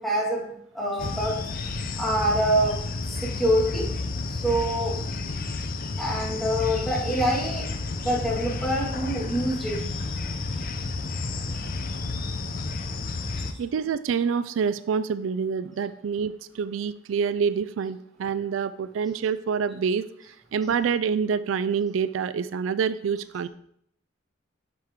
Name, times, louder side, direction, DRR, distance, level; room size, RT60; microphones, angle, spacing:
voice 1, 0.0-1.4 2.0-2.8 3.2-3.9 4.4-4.9 6.0-7.7 8.0-10.0, equal, ahead, -4 dB, 2.0 m, -25 dB
sound 1, 1.0-13.5, left 3 dB, 45° left, 0.7 m, -31 dB
voice 2, 13.6-23.5, right 6 dB, 90° right, 14 dB, 0.4 m, -27 dB
7.6 x 6.3 x 3.7 m, 0.71 s
head